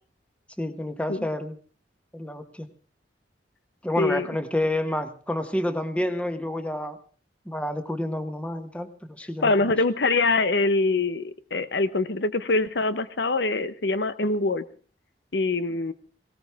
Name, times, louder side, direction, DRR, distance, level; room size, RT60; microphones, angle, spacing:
voice 1, 0.6-1.6 2.1-2.7 3.8-7.0 7.5-8.9 9.2-9.5, left 1 dB, 5° left, 8 dB, 1.3 m, -29 dB
voice 2, 4.0-4.3 9.4-14.6 15.3-15.9, left 3 dB, 75° left, 13 dB, 0.9 m, -24 dB
18.5 x 18.0 x 3.6 m, 0.40 s
head